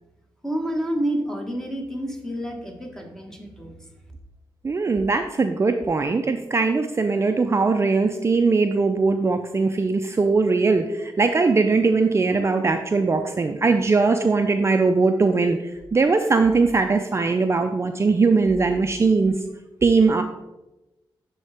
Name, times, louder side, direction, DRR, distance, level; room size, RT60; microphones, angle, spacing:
voice 1, 0.4-3.8, right 1 dB, 5° left, 1 dB, 1.3 m, -29 dB
voice 2, 4.6-19.3 19.8-20.2, right 4 dB, 35° right, 6 dB, 0.4 m, -20 dB
10.5 x 3.8 x 3.4 m, 0.99 s
cardioid pair, 85°, 8 cm